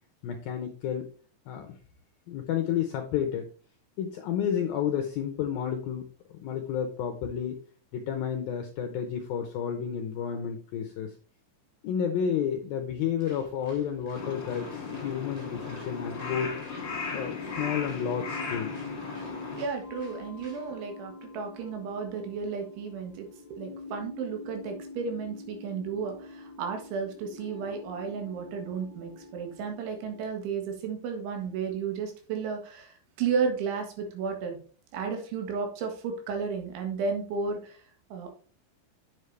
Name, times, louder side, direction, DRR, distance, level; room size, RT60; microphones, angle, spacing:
voice 1, 0.2-1.1 1.5-1.8 2.3-3.5 4.0-7.6 7.9-11.1 11.8-16.6 17.1-18.8, left 8 dB, 80° left, 5 dB, 2.1 m, -31 dB
sound 1, 13.2-20.7, right 3 dB, 60° right, 4.7 m, -55 dB
Crow, 14.1-19.6, left 4 dB, 35° left, 2.0 m, -36 dB
sound 2, 16.2-30.3, left 3 dB, 65° left, 1.7 m, -45 dB
voice 2, 19.6-34.6 34.9-37.8 38.1-38.3, right 5 dB, 80° right, 3 dB, 4.1 m, -33 dB
8.1 x 7.5 x 3.3 m, 0.42 s
omnidirectional pair, 5.4 m